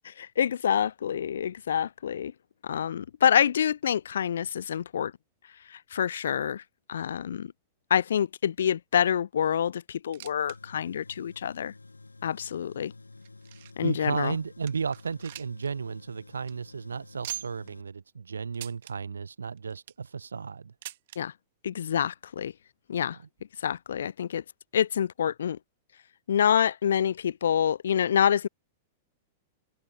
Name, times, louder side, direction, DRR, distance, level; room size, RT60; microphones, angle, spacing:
voice 1, 0.2-2.3 2.6-5.1 5.7-6.6 6.9-7.5 7.9-11.7 12.2-12.9 13.8-14.4 21.2-21.3 21.6-22.5 22.9-23.2 23.6-24.4 24.7-25.6 26.3-28.5, left 8 dB, 65° left, 0.3 m, -27 dB
sound 1, 9.9-10.6 10.9-11.0 11.6-11.7 12.4-13.9 14.3-14.4 14.7-15.7 16.0-16.1 16.4-16.5 17.2-17.7 18.5-18.9 19.6-20.1 20.8-21.2 22.2-22.3 22.5-22.6 23.4-23.5, right 15 dB, 55° right, 1.6 m, -42 dB
Tools, 10.5-17.8, left 3 dB, 85° left, 2.5 m, -51 dB
voice 2, 13.8-20.7, right 5 dB, 75° right, 0.5 m, -34 dB
open air
figure-of-eight pair, 100°, 0 cm